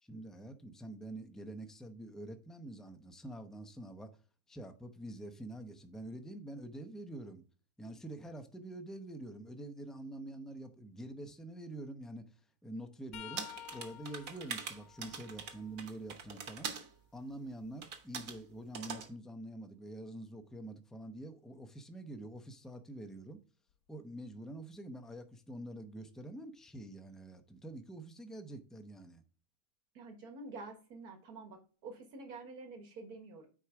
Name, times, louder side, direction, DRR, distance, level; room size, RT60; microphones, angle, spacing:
voice 1, 0.0-4.1 4.5-7.4 7.8-16.7 17.1-23.4 23.9-29.2, right 1 dB, ahead, 0.3 m, -46 dB
sound 1, 13.1-16.9 17.4-19.4 22.3-22.5 23.7-23.9 25.2-25.3, left 12 dB, 75° left, 1.1 m, -54 dB
sound 2, 13.4-16.9 17.8-18.4 18.7-19.1, right 6 dB, 65° right, 1.4 m, -43 dB
voice 2, 30.0-33.5, right 3 dB, 85° right, 2.1 m, -48 dB
9.2 x 4.8 x 3.5 m
omnidirectional pair, 1.6 m